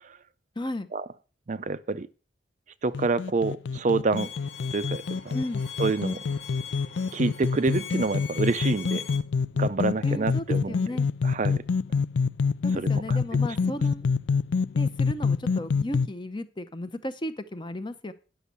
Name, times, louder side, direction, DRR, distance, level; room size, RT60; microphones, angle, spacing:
voice 1, 0.6-0.9 5.3-5.6 10.0-11.1 12.6-14.1 14.7-18.1, left 1 dB, 25° left, 11 dB, 0.7 m, -34 dB
voice 2, 1.5-2.1 2.8-4.3 4.7-5.3 5.8-6.2 7.1-9.0 9.6-10.7 11.2-11.6 12.7-13.4, right 3 dB, 40° right, 14 dB, 0.5 m, -27 dB
sound 1, 2.9-16.1, left 5 dB, 70° left, 0.4 m, -27 dB
Bowed string instrument, 4.2-9.2, left 8 dB, 85° left, 1.4 m, -40 dB
9.9 x 6.2 x 6.8 m, 0.36 s
head